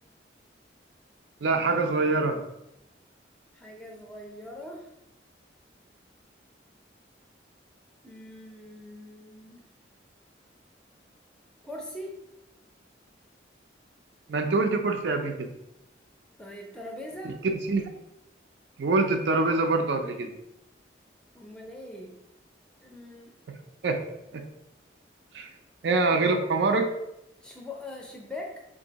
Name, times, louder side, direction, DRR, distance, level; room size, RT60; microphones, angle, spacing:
voice 1, 1.4-2.4 14.3-15.5 17.2-17.9 18.8-20.4 23.8-24.0 24.3-24.4 25.3-25.5 25.8-26.9, right 3 dB, 75° right, 5 dB, 0.5 m, -25 dB
voice 2, 3.5-4.9 8.0-9.7 11.6-12.3 16.4-17.4 21.3-22.2 22.8-23.4 27.4-28.6, left 1 dB, 5° left, 0 dB, 0.5 m, -42 dB
3.6 x 2.6 x 3.9 m, 0.86 s
head